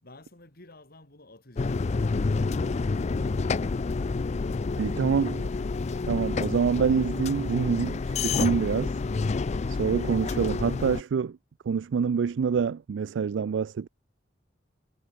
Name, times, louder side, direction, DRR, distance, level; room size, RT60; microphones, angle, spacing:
voice 1, 0.0-6.4, left 2 dB, 55° left, 4.5 m, -53 dB
sound 1, 1.6-11.0, left 4 dB, 40° left, 0.4 m, -29 dB
voice 2, 4.8-5.4 6.1-8.9 9.7-11.4 11.7-13.9, right 6 dB, 75° right, 0.4 m, -26 dB
head